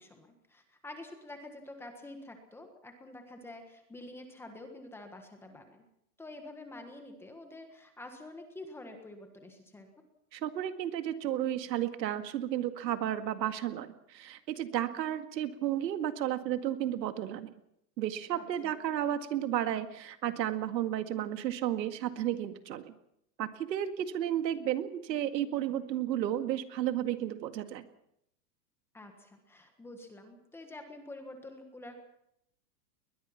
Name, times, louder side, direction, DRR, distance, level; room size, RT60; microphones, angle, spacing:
voice 1, 0.0-5.8 6.2-9.9 18.3-18.8 28.9-32.0, left 2 dB, 5° left, 5 dB, 1.5 m, -48 dB
voice 2, 10.3-17.5 18.0-22.9 23.4-27.8, right 11 dB, 85° right, 9 dB, 2.1 m, -33 dB
22.0 x 20.5 x 5.9 m, 0.77 s
supercardioid pair, 175°, 49 cm